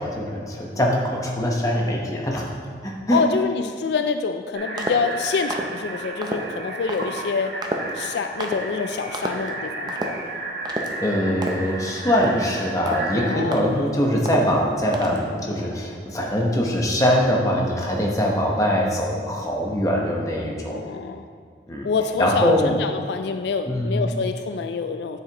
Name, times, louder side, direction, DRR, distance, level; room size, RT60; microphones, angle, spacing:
voice 1, 0.0-2.5 2.8-3.2 11.0-20.8 21.7-21.9 22.2-22.7 23.7-24.0, equal, 20° left, -1 dB, 1.0 m, -22 dB
voice 2, 3.1-7.5 7.9-10.2 13.2-13.8 20.7-21.2 21.8-25.2, left 5 dB, 70° left, 8 dB, 0.3 m, -26 dB
sound 1, 4.5-13.4, right 2 dB, 65° right, 1.1 m, -33 dB
sound 2, 4.8-5.1 5.5-5.8 6.2-6.5 6.9-7.1 7.6-8.0 8.4-8.6 9.1-9.5 9.9-10.2 10.7-11.0 11.4-11.7 12.1-12.5 12.9-13.1 13.5-13.9 14.3-14.6 14.9-15.3, right 1 dB, 25° right, 0.5 m, -30 dB
9.5 x 7.4 x 3.0 m, 2.1 s
head